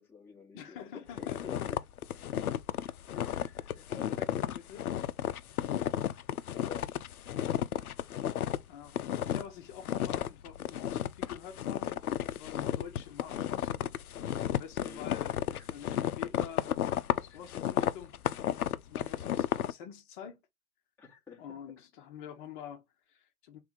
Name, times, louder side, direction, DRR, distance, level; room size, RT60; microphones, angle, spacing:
voice 1, 0.0-1.8 3.1-4.5 6.7-7.0 14.8-15.1 15.5-16.0 17.3-17.4 19.0-19.2 21.0-21.4, left 6 dB, 5° left, 1.1 m, -50 dB
voice 2, 0.5-1.7 3.9-4.8 8.7-12.0 12.3-13.9 14.5-16.7 17.3-18.1 18.8-20.4 21.4-23.6, left 9 dB, 35° left, 0.9 m, -47 dB
sound 1, 1.2-8.6 8.9-9.5 9.8-19.7, left 10 dB, 75° left, 0.5 m, -32 dB
3.5 x 3.3 x 3.6 m
figure-of-eight pair, 115°, 44 cm